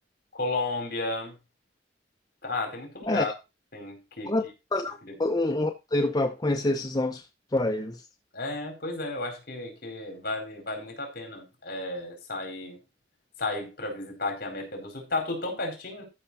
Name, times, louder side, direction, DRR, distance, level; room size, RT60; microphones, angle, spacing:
voice 1, 0.3-1.3 2.4-3.3 3.7-4.3 5.1-5.2 8.3-12.8 13.4-16.0, left 2 dB, 60° left, 4.6 m, -33 dB
voice 2, 4.7-7.2 7.5-8.0, left 2 dB, 20° left, 0.7 m, -26 dB
13.5 x 5.9 x 4.2 m
head